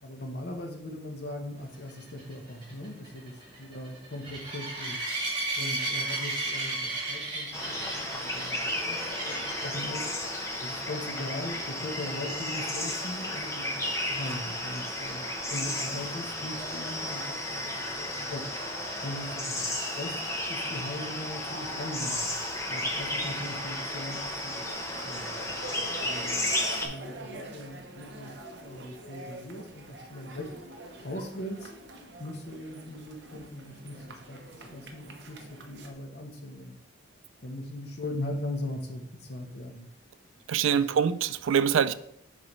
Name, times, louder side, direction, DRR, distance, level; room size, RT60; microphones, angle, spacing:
voice 1, 0.0-5.1 5.6-10.1 10.6-15.2 15.5-18.5 19.0-20.2 20.5-22.3 22.7-24.7 24.9-25.3 26.0-26.5 26.8-28.3 28.6-30.6 31.0-31.7 32.2-36.8 37.4-39.9 40.7-41.0, left 1 dB, 55° left, 1.0 m, -39 dB
sound 1, 1.9-9.8 10.4-10.7 11.0-11.1 11.5-11.6 15.2-15.3, right 2 dB, 25° right, 2.2 m, -34 dB
sound 2, 7.5-26.9, left 1 dB, 15° left, 0.8 m, -33 dB
sound 3, 24.7-35.9, right 2 dB, 60° right, 0.9 m, -45 dB
voice 2, 40.5-41.9, right 7 dB, 85° right, 0.4 m, -24 dB
7.5 x 5.0 x 3.1 m
head